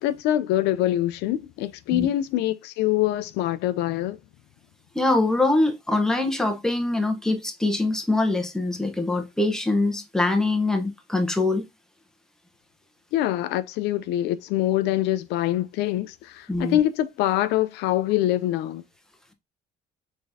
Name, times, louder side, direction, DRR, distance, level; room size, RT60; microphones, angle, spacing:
voice 1, 0.0-4.2 13.1-18.8, left 13 dB, 85° left, 0.4 m, -24 dB
voice 2, 4.9-11.6 16.5-16.8, left 2 dB, 5° left, 0.8 m, -23 dB
3.8 x 3.5 x 2.6 m
cardioid pair, 110°, 17 cm